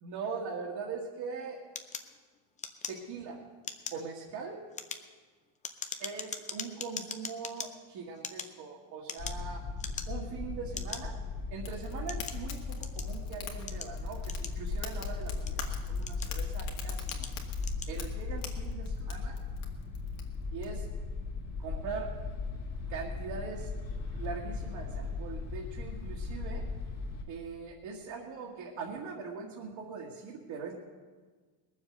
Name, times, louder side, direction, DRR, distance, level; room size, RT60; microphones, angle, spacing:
voice 1, 0.0-1.6 2.9-3.4 3.9-4.6 6.0-9.6 10.1-11.2 11.5-17.3 17.9-19.4 20.5-20.9 21.6-22.1 22.9-23.7 24.1-26.7 27.3-30.7, right 5 dB, 50° right, -3 dB, 1.9 m, -41 dB
sound 1, 1.8-3.3 3.6-4.1 4.6-7.7 8.2-9.5 9.8-10.3 10.7-11.0 11.7-13.2 13.7-14.8 15.3-16.5 17.0-17.3 17.6-17.9, left 6 dB, 15° left, 0.5 m, -41 dB
sound 2, 9.2-27.2, left 4 dB, 35° left, 2.5 m, -37 dB
Fire, 11.6-20.7, left 8 dB, 80° left, 2.1 m, -47 dB
20.0 x 7.4 x 6.5 m, 1.5 s
cardioid pair, 155°, 48 cm